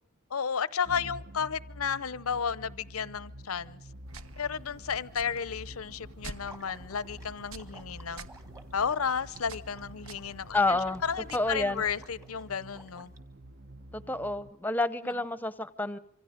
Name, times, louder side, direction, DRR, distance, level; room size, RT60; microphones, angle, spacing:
voice 1, 0.3-3.8 4.4-8.3 8.7-13.1, left 6 dB, 85° left, 0.8 m, -33 dB
sound 1, 0.8-14.5, right 1 dB, 50° right, 0.9 m, -49 dB
sound 2, 4.1-12.1, right 2 dB, 75° right, 1.3 m, -49 dB
Water / Liquid, 6.4-13.2, right 2 dB, 15° right, 1.4 m, -55 dB
voice 2, 10.5-11.0 11.3-11.8 13.9-16.0, left 2 dB, 10° left, 0.8 m, -29 dB
27.0 x 24.5 x 5.1 m
head